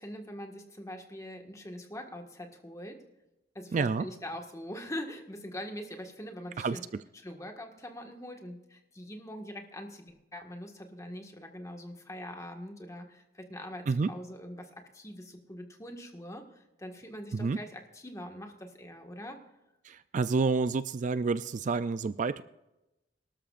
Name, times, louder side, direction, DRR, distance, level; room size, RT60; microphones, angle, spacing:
voice 1, 0.0-3.1 3.5-6.8 7.1-19.4, left 1 dB, 15° left, 3 dB, 1.6 m, -43 dB
voice 2, 3.7-4.0 6.6-6.8 13.9-14.1 17.3-17.6 19.8-22.4, right 4 dB, 40° right, 13 dB, 0.4 m, -29 dB
23.0 x 13.0 x 2.5 m, 0.94 s
head